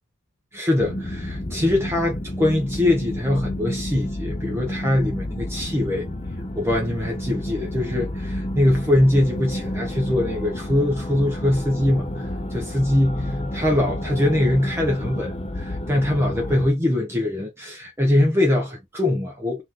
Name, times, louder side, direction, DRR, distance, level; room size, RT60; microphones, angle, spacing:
voice 1, 0.5-6.1 6.6-19.6, left 1 dB, 10° right, 0.9 m, -22 dB
sound 1, 0.8-16.7, left 1 dB, 25° left, 0.6 m, -30 dB
5.7 x 2.8 x 3.0 m
head